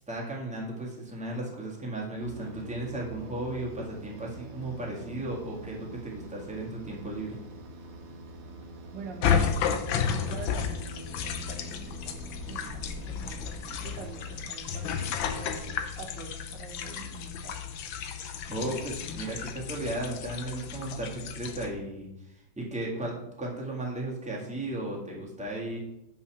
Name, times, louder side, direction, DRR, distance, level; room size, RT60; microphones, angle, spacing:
voice 1, 0.1-7.4 12.2-12.5 18.5-25.8, right 1 dB, 5° right, -3 dB, 1.6 m, -35 dB
sound 1, 2.1-15.0, right 3 dB, 50° right, 1.3 m, -45 dB
voice 2, 8.9-9.6 10.0-12.2 12.5-15.1 15.4-17.7, right 4 dB, 70° right, 3 dB, 1.4 m, -45 dB
sound 2, 9.2-21.7, left 7 dB, 85° left, 1.5 m, -32 dB
5.7 x 5.5 x 5.8 m, 0.84 s
omnidirectional pair, 2.1 m